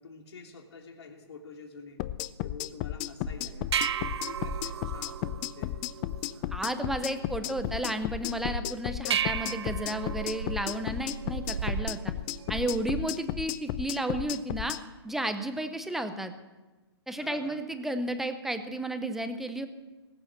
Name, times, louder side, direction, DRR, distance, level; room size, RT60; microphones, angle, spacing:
voice 1, 0.0-2.0 2.4-5.7 12.9-13.0 17.2-17.6, left 4 dB, 70° left, 3 dB, 3.0 m, -48 dB
sound 1, 2.0-14.8, left 15 dB, 25° left, 0.4 m, -34 dB
sound 2, 3.3-13.2, right 8 dB, 75° right, 0.5 m, -36 dB
voice 2, 6.5-12.1 12.5-14.8 15.0-16.3 17.1-19.7, right 1 dB, ahead, 8 dB, 0.7 m, -32 dB
19.0 x 8.7 x 7.4 m, 1.2 s
hypercardioid pair, 150°, 14 cm